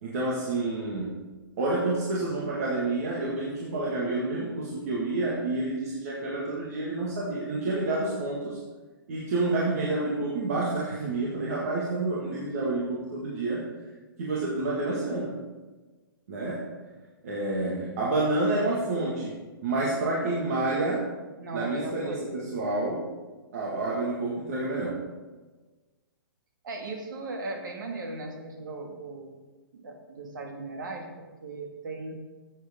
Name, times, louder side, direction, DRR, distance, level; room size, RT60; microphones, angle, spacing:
voice 1, 0.0-1.2 1.6-8.6 9.1-13.7 14.2-15.4 16.3-16.7 17.2-19.4 19.6-21.1 21.5-23.1 23.5-25.0, right 2 dB, 40° right, -5 dB, 1.9 m, -29 dB
voice 2, 21.4-22.5 26.6-29.3 29.7-32.1, right 2 dB, 55° right, 2 dB, 2.0 m, -38 dB
15.0 x 7.9 x 3.7 m, 1.3 s
hypercardioid pair, 175°, 12 cm